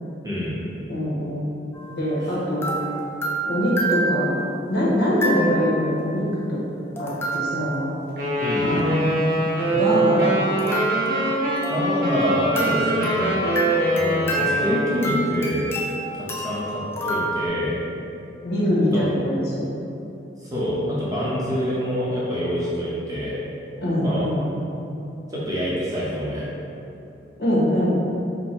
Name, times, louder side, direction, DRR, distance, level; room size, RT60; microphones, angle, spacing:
voice 1, 0.2-0.6 2.2-2.3 8.4-8.9 11.7-13.4 13.9-15.7 16.1-17.8 18.9-19.0 20.4-23.4 24.0-24.3 25.3-26.5, equal, 20° right, -8 dB, 0.8 m, -26 dB
voice 2, 0.9-1.6 2.0-2.8 3.4-4.3 4.7-6.6 7.0-7.9 8.6-9.2 9.7-10.5 18.4-19.7 23.8-24.4 27.4-28.0, equal, 70° left, -7 dB, 1.1 m, -23 dB
sound 1, 1.7-2.0 2.6-4.5 5.2-5.9 7.0-8.0 10.6-12.2 12.6-17.5, right 2 dB, 15° left, 0.3 m, -28 dB
Wind instrument woodwind instrument, 8.2-15.1, right 1 dB, 55° right, 1.0 m, -23 dB
4.5 x 2.2 x 4.3 m, 2.9 s
head